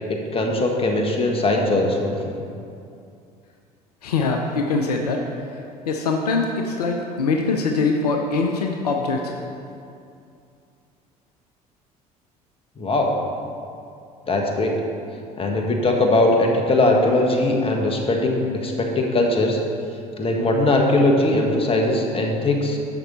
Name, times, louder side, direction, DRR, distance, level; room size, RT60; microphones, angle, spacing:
voice 1, 0.1-2.1 12.8-13.1 14.3-14.7 15.4-19.6 20.2-22.8, left 2 dB, 30° left, 1 dB, 1.5 m, -20 dB
voice 2, 4.0-9.3, left 3 dB, 75° left, 2 dB, 0.7 m, -23 dB
11.0 x 6.9 x 4.2 m, 2.5 s
figure-of-eight pair, 60°, 20 cm